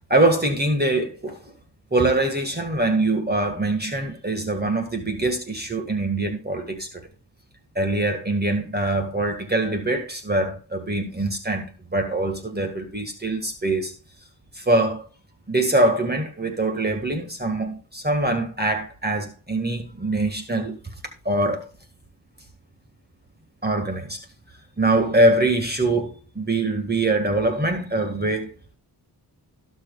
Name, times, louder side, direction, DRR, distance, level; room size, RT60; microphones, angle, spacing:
voice 1, 0.1-1.4 1.9-7.0 7.8-13.9 14.5-15.0 15.5-20.8 21.3-21.7 23.6-24.2 24.8-26.1 26.4-28.5, right 2 dB, 25° right, 1.9 m, -23 dB
18.0 x 6.4 x 2.4 m
wide cardioid pair, 105°, 41 cm